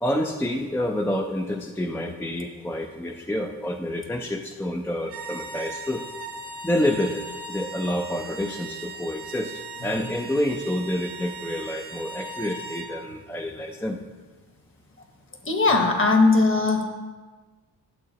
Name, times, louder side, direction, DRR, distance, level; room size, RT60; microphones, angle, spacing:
voice 1, 0.0-6.0 6.6-14.0, left 1 dB, 5° left, 2 dB, 0.4 m, -28 dB
sound 1, 5.0-12.9, right 3 dB, 80° right, 1.5 m, -38 dB
voice 2, 15.4-16.8, left 3 dB, 30° left, 4 dB, 1.2 m, -19 dB
11.5 x 7.3 x 2.8 m, 1.3 s
cardioid pair, 95°, 40 cm